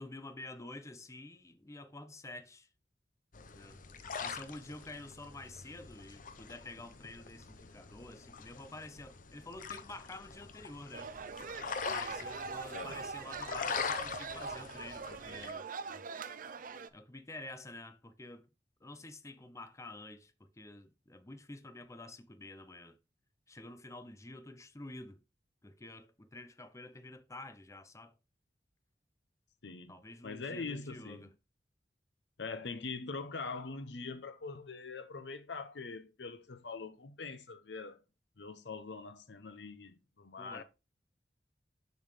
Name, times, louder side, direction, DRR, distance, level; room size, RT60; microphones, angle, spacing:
voice 1, 0.0-2.7 3.5-3.8 4.2-11.1 11.9-16.0 16.9-18.5 18.8-23.0 23.5-25.2 25.6-28.2 29.9-31.3 33.3-33.4 40.4-40.6, left 2 dB, 15° left, 0.7 m, -49 dB
sound 1, 3.3-15.5, left 5 dB, 50° left, 0.7 m, -43 dB
sound 2, 10.9-16.9, right 5 dB, 50° right, 0.6 m, -43 dB
voice 2, 29.6-30.0 30.2-31.2 32.4-38.0 38.4-40.6, left 4 dB, 80° left, 0.8 m, -43 dB
6.9 x 6.3 x 3.3 m
head